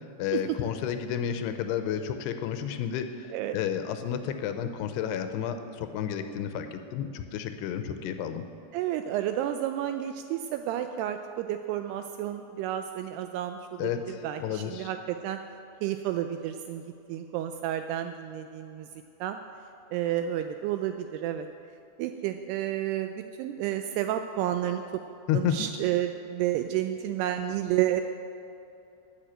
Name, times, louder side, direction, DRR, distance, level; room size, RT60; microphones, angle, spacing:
voice 1, 0.2-8.4 13.8-14.9 25.3-25.7, left 9 dB, 80° left, 8 dB, 2.5 m, -31 dB
voice 2, 8.7-15.4 15.8-16.8 17.1-18.9 19.2-19.4 19.9-21.5 22.0-24.8 25.3-28.0, right 12 dB, 85° right, 7 dB, 2.3 m, -31 dB
13.5 x 6.4 x 8.9 m, 2.7 s
omnidirectional pair, 5.2 m